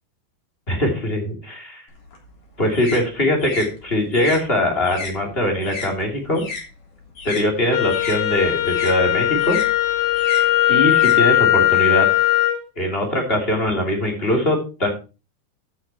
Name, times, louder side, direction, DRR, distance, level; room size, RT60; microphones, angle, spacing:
voice 1, 0.7-1.8 2.6-6.4 7.2-9.6 10.7-12.1 12.8-14.9, left 1 dB, 15° left, 1 dB, 2.3 m, -21 dB
sound 1, 1.9-6.7 7.0-11.8, left 4 dB, 50° left, 4.7 m, -35 dB
Wind instrument woodwind instrument, 7.7-12.6, left 15 dB, 65° left, 4.2 m, -18 dB
13.0 x 6.8 x 4.3 m, 0.33 s
omnidirectional pair, 4.9 m